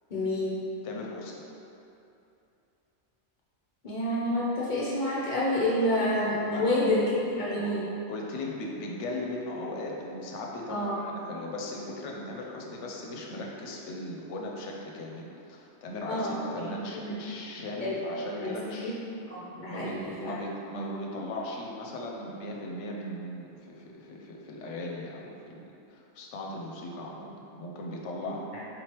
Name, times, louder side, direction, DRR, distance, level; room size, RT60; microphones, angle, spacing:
voice 1, 0.1-0.7 3.8-7.8 10.7-11.0 16.1-17.2 17.8-18.0 18.4-18.9 19.3-20.4 28.3-28.6, left 1 dB, 50° left, -8 dB, 0.7 m, -29 dB
voice 2, 0.8-1.5 6.5-6.6 7.5-7.8 8.1-19.0 19.5-28.5, left 1 dB, 75° left, -1 dB, 0.9 m, -38 dB
4.0 x 3.2 x 2.9 m, 2.8 s
omnidirectional pair, 1.3 m